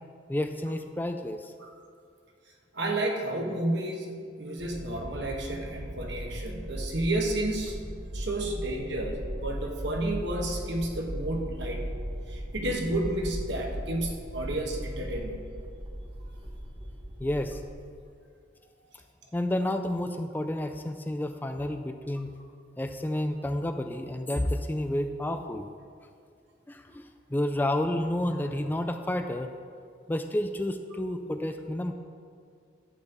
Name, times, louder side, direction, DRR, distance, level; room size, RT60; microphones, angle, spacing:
voice 1, 0.3-1.5 17.2-17.6 19.3-22.3 22.8-25.7 26.7-29.5 30.1-31.9, left 1 dB, 10° left, 7 dB, 0.3 m, -30 dB
voice 2, 2.7-7.8 8.1-11.8 12.3-15.4, right 1 dB, 70° right, 1 dB, 1.4 m, -31 dB
sound 1, 4.6-17.7, equal, 25° right, 1.0 m, -38 dB
11.5 x 4.4 x 8.0 m, 2.2 s
head